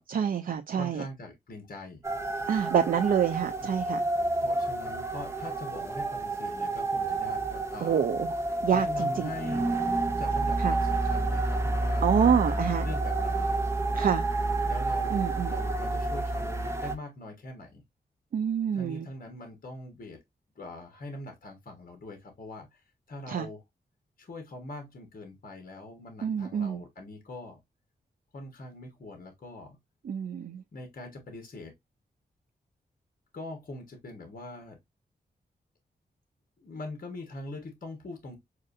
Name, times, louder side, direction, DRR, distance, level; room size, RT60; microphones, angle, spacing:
voice 1, 0.1-1.0 2.5-4.0 7.8-8.3 8.6-9.3 10.6-10.8 12.0-12.9 13.9-14.2 15.1-15.5 18.3-19.1 23.3-23.5 26.2-26.8 30.0-30.6, right 7 dB, 55° right, 0.4 m, -27 dB
voice 2, 0.8-2.0 4.4-8.1 8.7-13.5 14.7-17.8 18.7-20.2 20.5-23.6 24.2-27.6 28.3-29.8 30.7-31.7 33.3-34.8 36.6-38.4, left 2 dB, 55° left, 1.3 m, -43 dB
sound 1, 2.0-16.9, right 2 dB, 15° right, 0.9 m, -29 dB
6.4 x 2.6 x 2.5 m
wide cardioid pair, 105°, 17 cm